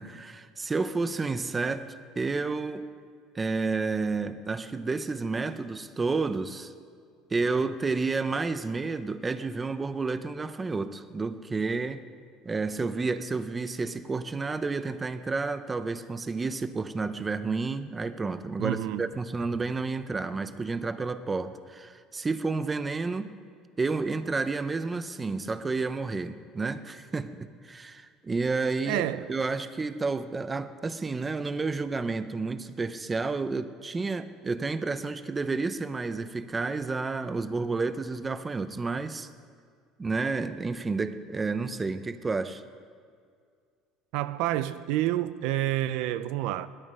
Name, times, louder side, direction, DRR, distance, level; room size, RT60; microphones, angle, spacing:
voice 1, 0.0-2.9 3.3-6.7 7.3-12.0 12.4-23.3 23.8-29.0 29.3-39.3 40.0-42.6, right 4 dB, 20° right, 0.7 m, -30 dB
voice 2, 18.6-19.0 28.9-29.3 44.1-46.7, right 14 dB, 75° right, 0.5 m, -28 dB
17.5 x 12.5 x 5.5 m
cardioid pair, 125°, 0 cm